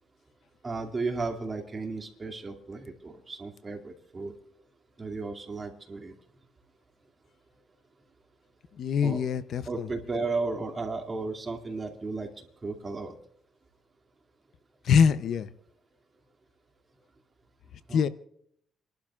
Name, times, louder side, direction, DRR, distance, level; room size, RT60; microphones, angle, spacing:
voice 1, 0.6-4.3 5.0-6.1 9.0-9.2 9.6-12.3 12.6-13.1 17.9-18.1, right 3 dB, 30° right, 3 dB, 2.5 m, -34 dB
voice 2, 8.8-9.9 14.8-15.5 17.9-18.1, left 7 dB, 65° left, 13 dB, 0.7 m, -24 dB
30.0 x 12.0 x 2.5 m, 0.72 s
cardioid pair, 90°, 0 cm